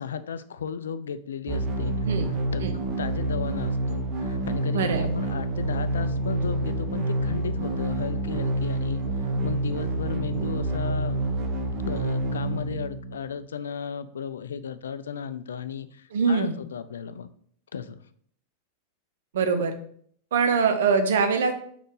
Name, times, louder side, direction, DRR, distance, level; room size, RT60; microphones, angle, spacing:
voice 1, 0.0-2.0 2.5-11.2 11.8-17.3 17.7-18.0, left 7 dB, 65° left, 13 dB, 0.4 m, -35 dB
sound 1, 1.5-13.4, right 2 dB, 35° right, 1.1 m, -28 dB
voice 2, 4.7-5.1 16.1-16.5 19.3-19.7 20.3-21.5, right 5 dB, 60° right, 7 dB, 0.8 m, -23 dB
5.0 x 4.3 x 4.6 m, 0.62 s
figure-of-eight pair, 90°, 0 cm